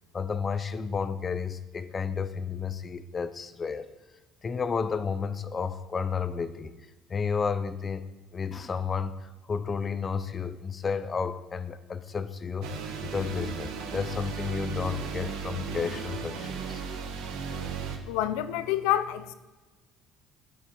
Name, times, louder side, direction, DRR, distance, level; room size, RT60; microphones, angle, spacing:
voice 1, 0.1-3.9 4.4-6.7 7.1-8.0 8.3-12.7 13.0-16.8, left 5 dB, 25° left, 12 dB, 0.6 m, -32 dB
sound 1, 12.6-18.0, right 6 dB, 80° right, 1.3 m, -35 dB
voice 2, 18.1-19.3, left 12 dB, 90° left, 12 dB, 0.6 m, -27 dB
12.5 x 7.2 x 4.6 m, 1.2 s
cardioid pair, 125°, 0 cm